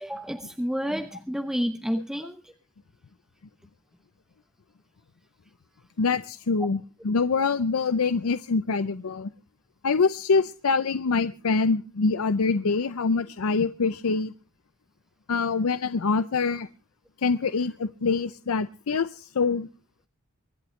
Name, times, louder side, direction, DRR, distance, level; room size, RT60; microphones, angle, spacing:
voice 1, 0.0-2.5, equal, ahead, 0.6 m, -30 dB
voice 2, 6.0-9.3 9.8-14.3 15.3-16.7 17.2-19.7, left 4 dB, 80° left, 0.6 m, -25 dB
24.5 x 11.5 x 3.2 m
head